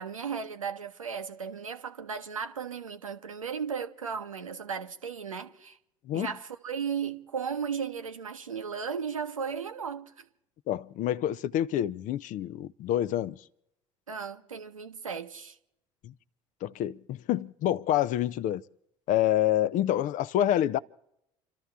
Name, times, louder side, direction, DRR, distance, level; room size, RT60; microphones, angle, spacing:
voice 1, 0.0-5.8 6.1-10.3 14.1-15.6, right 6 dB, 85° right, 0.7 m, -35 dB
voice 2, 10.7-13.4 16.0-16.1 16.6-18.6 19.1-20.8, left 12 dB, 50° left, 0.6 m, -27 dB
29.5 x 13.0 x 3.5 m
figure-of-eight pair, 55°, 17 cm